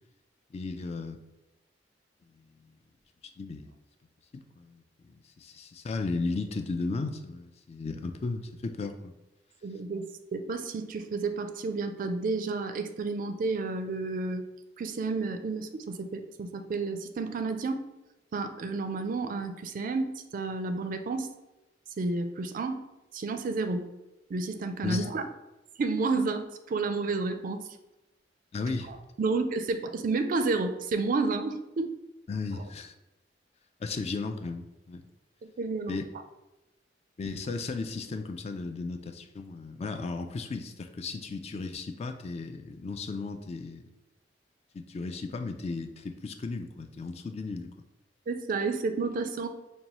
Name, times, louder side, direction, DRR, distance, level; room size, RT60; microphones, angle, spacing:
voice 1, 0.5-1.2 2.3-2.8 3.4-3.7 4.3-9.1 24.8-25.1 28.5-28.9 32.3-32.9 33.8-35.0 35.9-36.0 37.2-43.9 44.7-47.7, left 3 dB, 35° left, 7 dB, 0.3 m, -35 dB
voice 2, 9.6-10.0 10.3-14.5 14.8-17.8 18.3-21.3 22.0-22.8 23.1-23.9 24.3-25.2 25.8-27.7 29.2-31.9 35.6-36.0 48.3-49.5, right 3 dB, 50° right, 8 dB, 0.4 m, -31 dB
5.2 x 2.2 x 2.9 m, 0.98 s
head